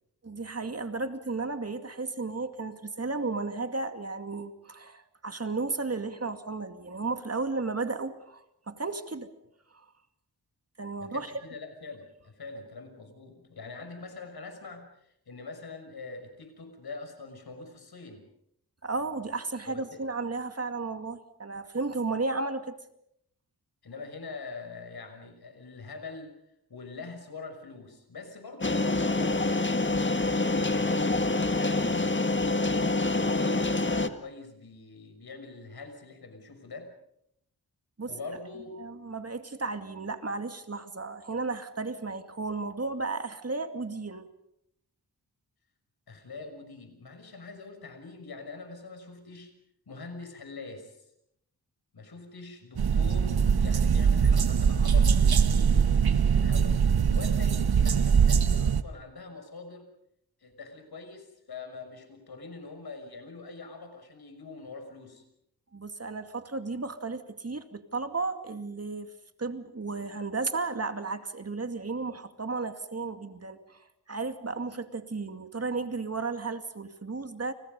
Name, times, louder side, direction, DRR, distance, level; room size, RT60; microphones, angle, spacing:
voice 1, 0.2-9.3 9.7-9.8 10.8-11.3 18.8-22.8 38.0-38.1 38.8-44.3 65.7-69.1 69.4-77.5, right 3 dB, 40° right, 8 dB, 2.4 m, -34 dB
voice 2, 11.0-18.2 19.7-20.0 23.8-26.4 26.7-30.0 30.4-32.7 33.1-36.9 38.1-38.8 46.1-49.5 49.9-51.0 51.9-56.8 57.1-59.9 60.4-65.2, left 3 dB, 75° left, 6 dB, 6.3 m, -44 dB
A clock and a fridge in a kitchen at night, 28.6-34.1, left 2 dB, 30° left, 1.9 m, -26 dB
sound 1, 52.8-58.8, right 6 dB, 75° right, 1.3 m, -22 dB
30.0 x 29.5 x 5.5 m, 0.77 s
cardioid pair, 65°, 38 cm